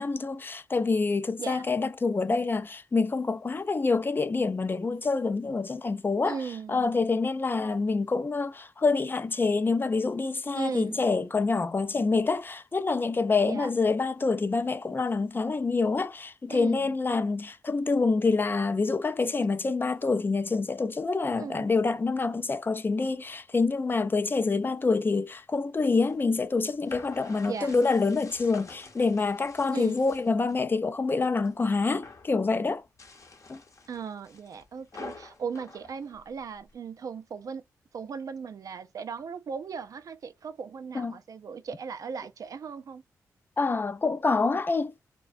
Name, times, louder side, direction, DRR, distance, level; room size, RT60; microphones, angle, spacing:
voice 1, 0.0-6.4 6.7-32.8 33.5-33.6 40.9-41.2 43.6-45.1, left 4 dB, 30° left, 0.4 m, -26 dB
voice 2, 6.3-6.9 10.6-11.0 13.5-13.7 16.5-16.9 21.4-21.7 27.5-27.7 29.7-30.0 33.9-37.6 37.9-43.0, right 6 dB, 60° right, 0.3 m, -37 dB
sound 1, 25.8-30.6 31.0-31.6 31.8-32.4 32.8-36.7, left 3 dB, 50° left, 0.8 m, -48 dB
2.3 x 2.2 x 2.4 m
cardioid pair, 55°, 7 cm